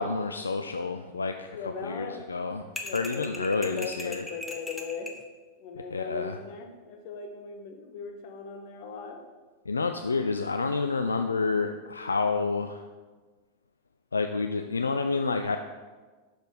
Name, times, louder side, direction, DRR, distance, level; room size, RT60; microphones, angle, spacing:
voice 1, 0.0-1.6 1.8-2.6 2.9-4.2 5.9-6.4 9.7-12.8 14.1-15.6, left 4 dB, 75° left, 6 dB, 0.3 m, -29 dB
voice 2, 1.5-2.2 2.8-5.1 5.6-9.2, left 5 dB, 45° left, 4 dB, 1.1 m, -39 dB
sound 1, 2.8-5.2, left 2 dB, 10° left, 0.8 m, -39 dB
6.3 x 5.1 x 5.3 m, 1.3 s
figure-of-eight pair, 90°, 0 cm